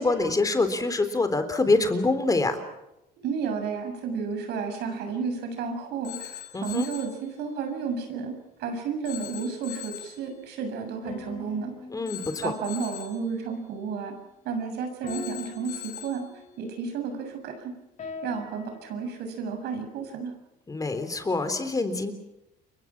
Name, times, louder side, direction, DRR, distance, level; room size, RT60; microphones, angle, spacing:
voice 1, 0.0-2.6 6.5-6.9 11.9-12.5 20.7-22.1, left 3 dB, 20° left, 9 dB, 3.6 m, -25 dB
voice 2, 3.2-8.3 8.6-11.7 12.4-14.1 14.5-16.3 16.6-17.7 18.2-20.3, right 5 dB, 80° right, 5 dB, 7.1 m, -32 dB
Telephone, 6.0-7.2 9.0-10.2 12.1-13.2 15.1-16.2, left 12 dB, 70° left, 6.8 m, -40 dB
sound 1, 11.0-14.1 15.0-17.4 18.0-21.0, left 4 dB, 45° left, 3.9 m, -45 dB
29.5 x 24.0 x 6.1 m, 0.89 s
cardioid pair, 110°, 17 cm